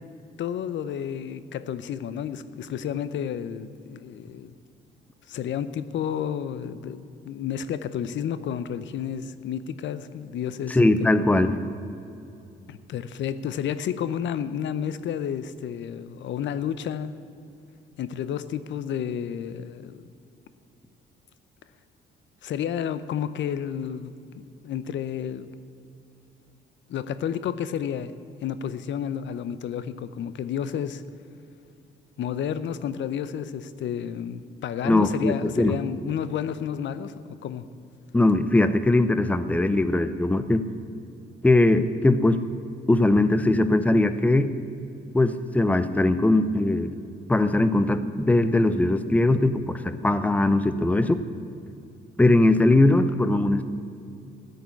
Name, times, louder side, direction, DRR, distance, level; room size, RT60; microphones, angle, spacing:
voice 1, 0.4-4.5 5.3-11.2 12.7-17.1 18.0-20.1 22.4-25.5 26.9-28.1 28.4-31.0 32.2-37.7, left 8 dB, 70° left, 13 dB, 0.7 m, -31 dB
voice 2, 10.7-11.6 34.8-35.7 38.1-40.7 41.4-42.4 42.9-44.5 45.1-46.9 47.3-51.2 52.2-53.6, left 2 dB, 5° left, 12 dB, 0.7 m, -20 dB
14.0 x 6.6 x 9.6 m, 2.6 s
cardioid pair, 90°, 20 cm